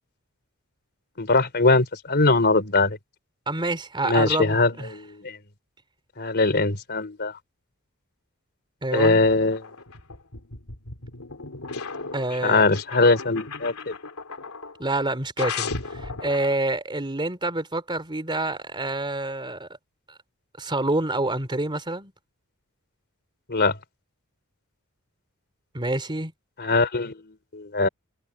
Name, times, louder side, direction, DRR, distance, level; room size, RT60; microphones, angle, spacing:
voice 1, 1.2-3.0 4.0-5.4 6.2-7.3 8.9-9.7 12.4-14.0 23.5-23.8 26.6-27.9, left 3 dB, 50° left, 3.6 m, -21 dB
voice 2, 3.5-4.9 8.8-9.2 12.1-12.6 14.8-19.7 20.6-22.1 25.7-26.3, right 2 dB, 20° right, 3.1 m, -27 dB
sound 1, 9.1-14.8 15.4-16.5, left 4 dB, 80° left, 3.1 m, -35 dB
head